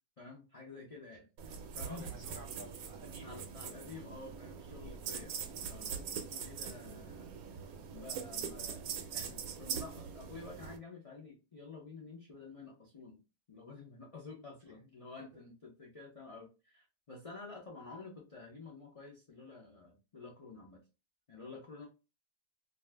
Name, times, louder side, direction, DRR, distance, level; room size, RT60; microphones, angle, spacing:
voice 1, 0.2-2.1 3.2-7.6 7.9-13.2 13.5-20.8 21.3-21.9, left 4 dB, 65° left, -2 dB, 0.3 m, -50 dB
sound 1, 1.4-10.8, right 7 dB, 75° right, 1.0 m, -43 dB
voice 2, 1.8-3.5, right 2 dB, 50° right, 0 dB, 0.7 m, -51 dB
2.5 x 2.4 x 3.2 m, 0.29 s
omnidirectional pair, 1.6 m